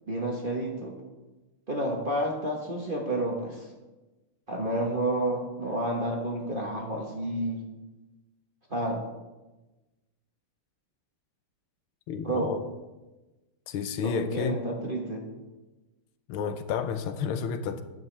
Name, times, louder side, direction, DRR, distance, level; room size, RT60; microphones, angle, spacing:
voice 1, 0.1-0.9 1.7-3.6 4.5-7.6 8.7-9.0 12.2-12.5 14.0-15.2, right 1 dB, 30° right, 0 dB, 1.1 m, -30 dB
voice 2, 12.1-12.6 13.7-14.6 16.3-17.8, left 7 dB, 80° left, 10 dB, 1.5 m, -31 dB
14.0 x 10.5 x 3.3 m, 1.1 s
omnidirectional pair, 2.3 m